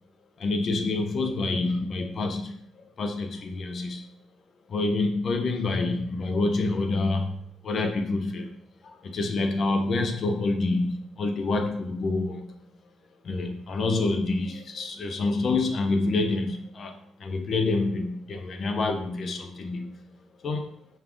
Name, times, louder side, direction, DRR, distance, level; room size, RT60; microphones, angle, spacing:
voice 1, 0.4-4.1 4.7-8.6 8.8-12.6 13.2-20.1 20.4-20.7, left 3 dB, 55° left, 6 dB, 0.6 m, -27 dB
5.3 x 2.4 x 3.6 m, 0.66 s
cardioid pair, 90°, 0 cm